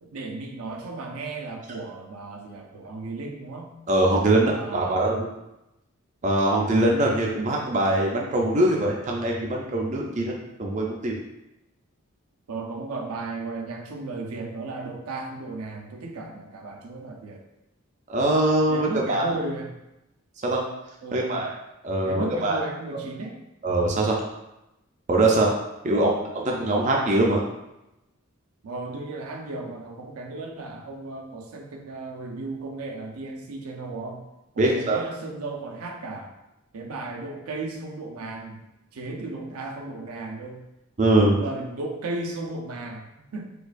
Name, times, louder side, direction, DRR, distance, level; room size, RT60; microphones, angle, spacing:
voice 1, 0.0-3.7 4.5-5.1 7.4-7.5 12.5-17.4 18.7-19.7 21.0-21.5 22.0-23.4 25.9-26.3 28.6-34.2 34.5-36.3 36.7-38.7 38.9-40.6 41.3-43.5, right 3 dB, 85° right, 1 dB, 0.5 m, -35 dB
voice 2, 3.9-5.3 6.2-11.2 18.1-19.3 20.4-20.6 21.1-21.5 21.8-22.6 23.6-24.2 25.1-25.5 25.8-27.4 34.6-35.0 41.0-41.4, right 1 dB, 35° right, -1 dB, 0.4 m, -22 dB
4.4 x 2.3 x 2.5 m, 0.91 s
head